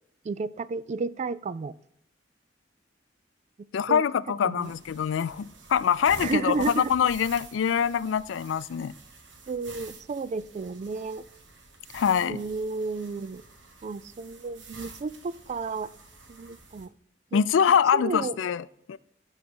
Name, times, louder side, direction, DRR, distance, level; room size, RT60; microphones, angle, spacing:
voice 1, 0.2-1.7 3.9-4.0 4.4-4.7 6.2-6.9 9.5-11.2 12.2-13.4 13.8-15.9 16.3-16.9 17.3-17.4 17.9-18.3, right 4 dB, 40° right, 0.3 m, -32 dB
voice 2, 3.7-8.9 11.9-12.4 17.3-19.0, left 7 dB, 85° left, 0.4 m, -24 dB
sound 1, 4.6-16.9, right 3 dB, 80° right, 1.4 m, -48 dB
9.9 x 4.0 x 6.1 m
head